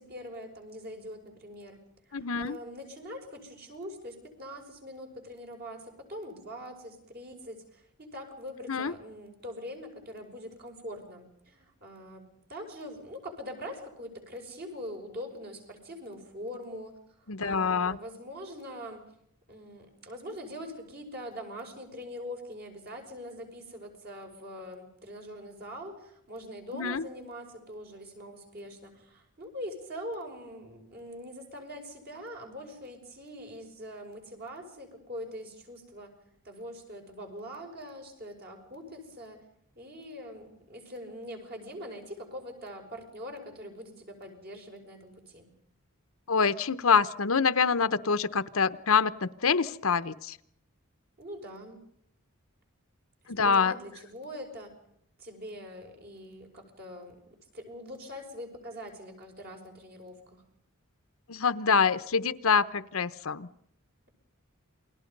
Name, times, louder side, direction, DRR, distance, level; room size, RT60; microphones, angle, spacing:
voice 1, 0.0-19.0 19.5-36.1 36.4-39.4 39.8-45.5 51.2-51.8 53.4-54.7 55.2-57.2 57.5-60.4, equal, 45° right, 3 dB, 6.0 m, -43 dB
voice 2, 2.1-2.6 8.7-8.9 17.3-18.0 26.7-27.1 46.3-50.4 53.3-53.7 61.3-63.5, left 5 dB, 70° left, 13 dB, 0.9 m, -26 dB
29.0 x 21.5 x 5.4 m, 0.72 s
head